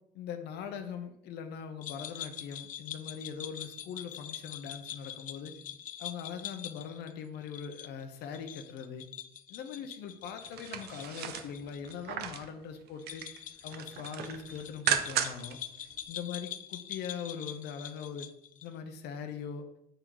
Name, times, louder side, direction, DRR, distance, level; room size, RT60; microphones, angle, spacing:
voice 1, 0.1-5.6 6.0-9.0 9.5-13.3 13.6-15.6 16.1-18.3 18.6-19.7, left 7 dB, 80° left, 7 dB, 0.7 m, -41 dB
sound 1, 1.8-12.0 12.2-12.3 13.0-18.7, left 10 dB, 50° left, 0.4 m, -44 dB
sound 2, 10.4-12.5 12.9-13.4 13.7-15.5 15.9-16.0, right 9 dB, 70° right, 0.8 m, -34 dB
6.7 x 3.8 x 4.6 m, 0.76 s
cardioid pair, 110°, 17 cm